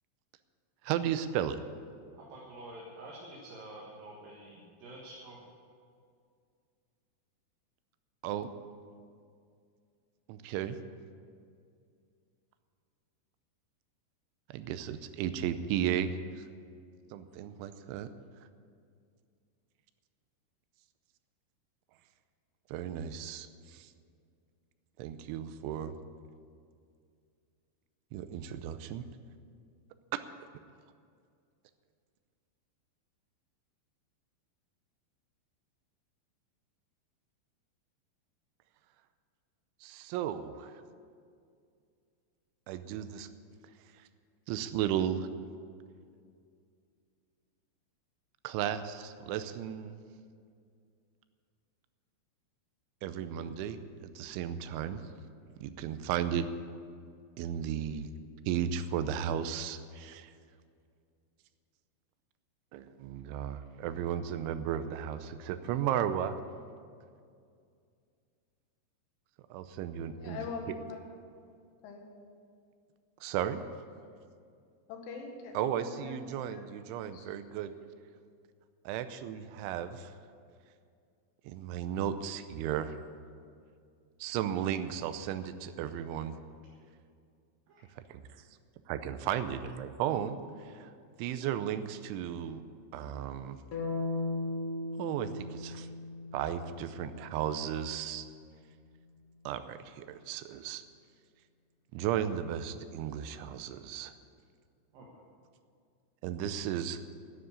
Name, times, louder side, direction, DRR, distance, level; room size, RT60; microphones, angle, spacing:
voice 1, 0.8-1.6 8.2-8.5 10.3-10.8 14.5-16.4 17.1-18.1 22.7-23.9 25.0-25.9 28.1-29.0 39.8-40.8 42.7-43.3 44.5-45.3 48.4-50.0 53.0-55.0 55.6-56.5 57.4-58.1 58.5-60.3 62.7-66.4 69.5-70.5 73.2-73.6 75.5-77.7 78.9-80.1 81.4-83.0 84.2-86.3 88.1-88.2 88.9-90.9 91.2-92.6 92.9-93.6 95.0-95.9 96.3-98.3 99.5-100.8 101.9-104.1 106.2-107.0, right 10 dB, 90° right, 11 dB, 3.1 m, -34 dB
voice 2, 2.1-5.5 86.0-86.4 87.7-87.8 104.9-105.2, right 1 dB, 60° right, -4 dB, 2.8 m, -49 dB
voice 3, 70.1-71.0 71.8-72.0 74.9-76.8 77.0-77.3 83.4-83.5, left 4 dB, 90° left, 2 dB, 4.3 m, -43 dB
sound 1, 93.7-97.8, left 2 dB, 65° left, 1.4 m, -37 dB
11.0 x 9.6 x 9.7 m, 2.3 s
omnidirectional pair, 5.4 m